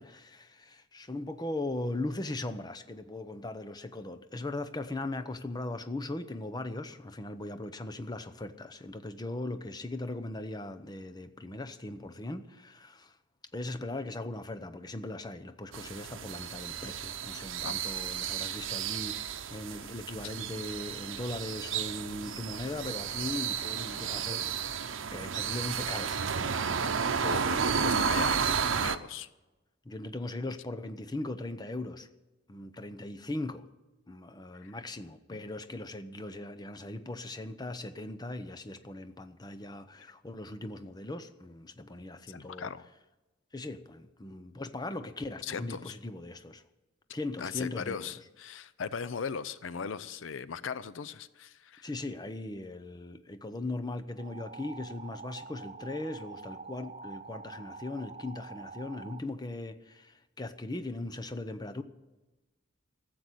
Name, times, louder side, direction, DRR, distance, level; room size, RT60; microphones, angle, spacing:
voice 1, 0.0-13.2 13.5-26.2 29.8-32.1 32.5-33.6 34.1-42.7 43.5-46.6 47.1-48.1 51.8-61.8, left 2 dB, 20° left, 10 dB, 0.8 m, -39 dB
sound 1, 15.7-29.0, right 6 dB, 80° right, 0.8 m, -32 dB
voice 2, 27.1-28.4 28.8-29.3 34.6-34.7 42.3-42.9 45.4-45.9 47.4-51.9, left 6 dB, 80° left, 16 dB, 0.6 m, -38 dB
sound 2, 54.2-59.2, right 4 dB, 35° right, 0.6 m, -46 dB
14.0 x 7.8 x 9.7 m, 1.1 s
head